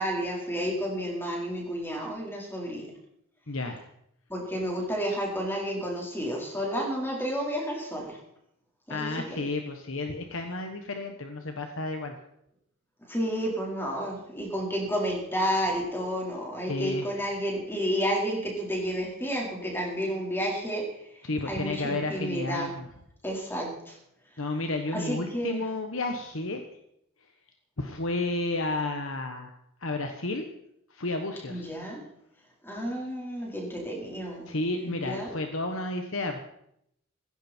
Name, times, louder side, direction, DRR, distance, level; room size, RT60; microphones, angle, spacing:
voice 1, 0.0-2.9 4.3-8.2 8.9-9.4 13.0-20.9 21.4-22.7 23.2-24.0 24.9-25.6 31.5-32.0 32.6-34.5 34.9-35.4, equal, 10° left, -1 dB, 4.5 m, -31 dB
voice 2, 3.5-3.8 8.9-12.1 16.7-17.1 21.2-22.9 24.4-26.6 27.8-29.5 29.8-30.5 30.9-31.7 34.5-36.4, left 2 dB, 65° left, 5 dB, 1.4 m, -32 dB
17.0 x 15.5 x 4.5 m, 0.75 s
head